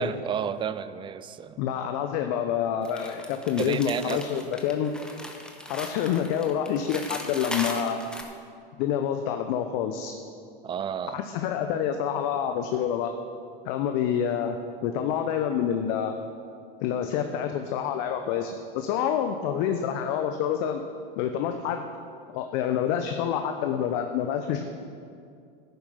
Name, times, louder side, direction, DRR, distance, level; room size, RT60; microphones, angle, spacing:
voice 1, 0.0-1.6 3.6-4.2 10.6-11.2, right 8 dB, 15° right, 14 dB, 0.4 m, -31 dB
voice 2, 1.6-4.9 5.7-8.0 8.8-10.1 11.1-13.1 13.6-14.6 14.8-16.2 16.8-20.8 21.2-21.8 22.3-24.7, left 9 dB, 50° left, 6 dB, 0.8 m, -27 dB
sound 1, 2.8-8.2, left 1 dB, 5° left, 1.3 m, -38 dB
10.5 x 9.3 x 5.7 m, 2.4 s
hypercardioid pair, 95°, 29 cm